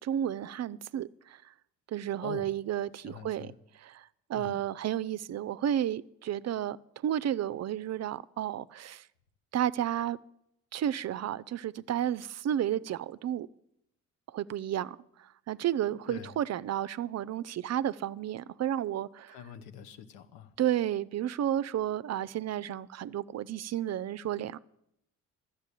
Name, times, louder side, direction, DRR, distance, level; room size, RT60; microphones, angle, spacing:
voice 1, 0.0-1.4 1.9-3.5 4.0-6.8 7.0-9.0 9.5-10.2 10.7-13.5 14.3-19.3 20.6-24.6, right 11 dB, 45° right, 0.5 m, -32 dB
voice 2, 2.2-2.5 3.0-3.5 4.3-4.6 16.1-16.3 19.3-20.5, left 8 dB, 80° left, 1.0 m, -44 dB
12.0 x 8.0 x 8.3 m
hypercardioid pair, 55°, 36 cm